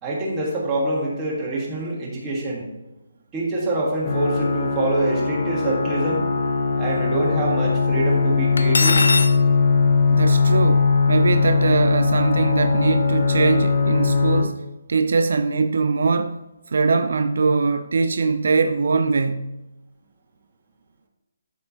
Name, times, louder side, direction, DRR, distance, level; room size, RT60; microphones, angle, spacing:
voice 1, 0.0-2.7 3.3-6.2 6.8-9.0, right 2 dB, 10° right, 1.6 m, -25 dB
sound 1, 4.0-14.4, left 4 dB, 35° left, 1.0 m, -20 dB
Cutlery silverware, 8.6-9.3, left 3 dB, 75° left, 0.6 m, -20 dB
voice 2, 10.1-14.6 14.9-16.4 16.7-19.5, right 4 dB, 60° right, 0.4 m, -21 dB
12.5 x 4.4 x 2.9 m
hypercardioid pair, 175°, 0 cm